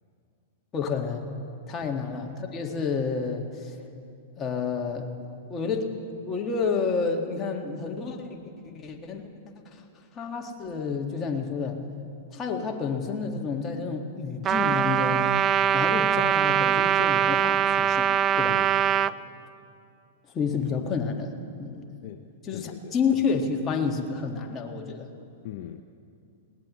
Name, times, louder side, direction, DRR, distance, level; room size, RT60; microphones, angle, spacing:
voice 1, 0.7-1.3 1.7-3.8 4.4-5.1 5.5-5.9 6.2-9.3 9.7-9.8 10.1-11.8 12.3-15.4 15.7-18.1 18.4-18.5 20.3-21.3 21.6-21.9 22.5-25.1, left 5 dB, 25° left, 2 dB, 1.8 m, -29 dB
Trumpet, 14.4-19.1, right 9 dB, 30° right, 0.3 m, -22 dB
voice 2, 18.5-18.8 22.0-23.0 25.4-25.8, left 12 dB, 55° left, 8 dB, 0.6 m, -41 dB
20.0 x 18.5 x 3.2 m, 2.5 s
hypercardioid pair, 105°, 0 cm